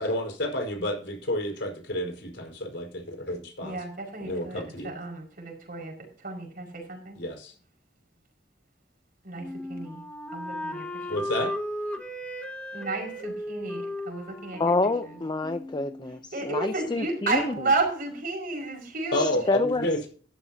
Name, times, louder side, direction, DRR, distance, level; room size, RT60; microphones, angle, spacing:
voice 1, 0.0-3.8 4.2-4.9 7.2-7.5 11.1-11.5 19.1-20.1, left 1 dB, 70° left, 3 dB, 4.9 m, -30 dB
voice 2, 3.6-7.2 9.2-10.0 10.3-11.1 12.7-14.7 15.0-15.2 16.3-19.4, right 3 dB, 55° right, 3 dB, 5.5 m, -32 dB
Wind instrument woodwind instrument, 9.4-16.2, left 1 dB, 5° left, 1.7 m, -36 dB
voice 3, 14.6-17.5 19.1-19.9, left 3 dB, 25° left, 9 dB, 0.6 m, -27 dB
14.0 x 12.5 x 2.8 m, 0.43 s
head